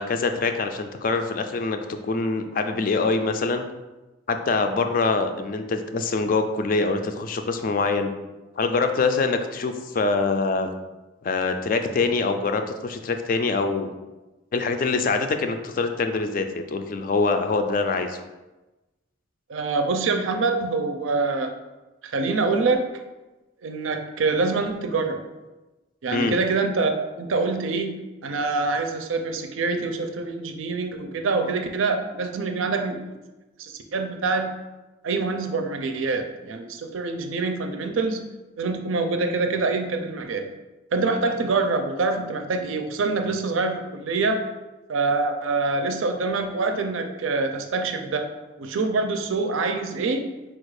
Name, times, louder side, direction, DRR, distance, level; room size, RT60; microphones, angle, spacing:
voice 1, 0.0-3.7 4.3-8.1 8.6-10.7 11.2-13.9 14.5-18.2 26.1-26.3, left 3 dB, 45° left, 7 dB, 0.3 m, -24 dB
voice 2, 19.5-21.5 22.0-22.9 23.6-25.3 26.0-28.0 28.2-33.0 33.6-34.5 35.0-38.2 38.6-40.5 40.9-44.4 44.9-48.3 48.6-50.3, right 3 dB, 85° right, 6 dB, 0.5 m, -25 dB
4.2 x 2.4 x 4.7 m, 1.1 s
head